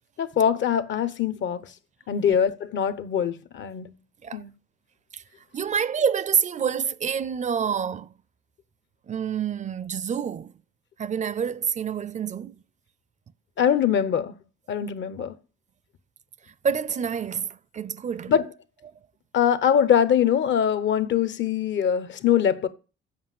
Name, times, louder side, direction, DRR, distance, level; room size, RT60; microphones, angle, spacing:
voice 1, 0.2-1.7 2.1-3.9 4.3-4.5 13.6-14.3 14.7-15.3 18.3-18.5 19.3-22.7, left 8 dB, 70° left, 0.9 m, -23 dB
voice 2, 5.5-8.1 9.1-10.5 11.0-12.5 16.6-17.5 17.7-18.3, right 7 dB, 40° right, 0.4 m, -27 dB
7.9 x 5.5 x 7.5 m
cardioid pair, 90°, 20 cm